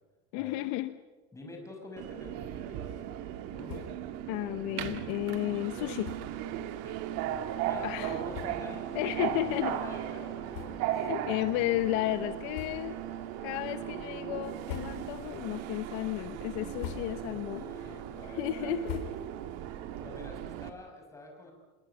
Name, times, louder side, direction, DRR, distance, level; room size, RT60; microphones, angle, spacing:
voice 1, 0.3-0.9 4.3-6.1 7.8-8.2 8.9-9.8 11.1-13.0 13.4-17.6 18.3-19.0, left 16 dB, 60° left, 12 dB, 0.9 m, -33 dB
voice 2, 1.3-3.2 3.5-3.9 4.7-4.8 5.7-5.9 6.8-7.0 7.6-8.8 9.2-11.1 17.0-18.8 19.1-19.2 20.0-21.5, left 2 dB, 10° left, 1 dB, 5.9 m, -47 dB
Subway metro underground, 2.0-20.7, right 11 dB, 55° right, 1.9 m, -37 dB
sound 1, 3.6-4.1 4.4-4.5 4.8-5.0 6.0-6.4 7.2-7.3 7.9-8.0 8.3-8.8 9.4-9.5 10.5-11.1 11.5-11.6 12.5-13.1 13.5-14.0 14.4-15.3 15.7-16.1 16.5-17.4 17.8-19.6, left 10 dB, 75° left, 4.0 m, -44 dB
26.5 x 21.0 x 7.0 m, 1.3 s
supercardioid pair, 150°, 30 cm